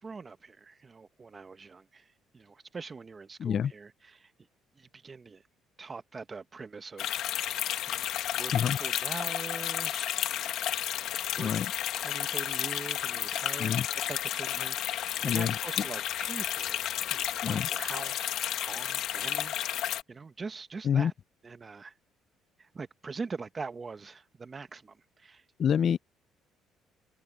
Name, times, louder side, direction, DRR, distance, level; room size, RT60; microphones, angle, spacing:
voice 1, 0.0-4.3 4.8-5.4 5.8-7.2 7.9-8.1 8.3-10.6 11.4-11.5 11.9-16.8 17.1-18.3 18.6-19.8 20.1-21.1 21.4-21.9 22.6-25.4, right 4 dB, 25° right, 1.3 m, -43 dB
voice 2, 3.4-3.7 8.5-8.8 11.4-11.7 13.6-13.9 15.2-15.5 17.4-17.7 20.8-21.1 25.6-26.0, left 8 dB, 45° left, 0.3 m, -27 dB
sound 1, 7.0-20.0, left 12 dB, 70° left, 1.5 m, -32 dB
cardioid pair, 120°, 0 cm